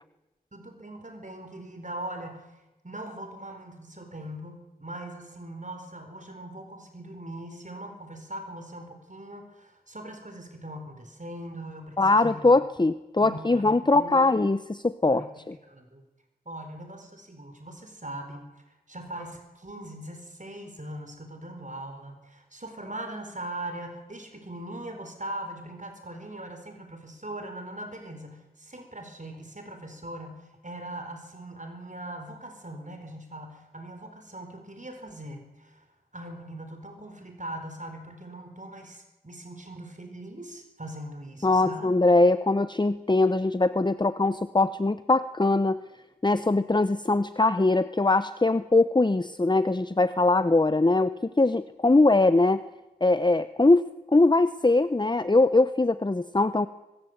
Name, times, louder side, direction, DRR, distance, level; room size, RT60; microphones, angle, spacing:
voice 1, 0.5-2.5 2.8-12.6 13.2-14.3 15.1-16.0 16.5-18.5 18.9-35.9 36.1-41.9, right 1 dB, 55° right, 5 dB, 4.5 m, -41 dB
voice 2, 12.0-15.6 41.4-45.8 46.2-52.6 53.0-53.8 54.1-56.7, left 2 dB, 30° left, 13 dB, 0.7 m, -22 dB
24.0 x 20.5 x 8.1 m, 1.0 s
wide cardioid pair, 50°, 16 cm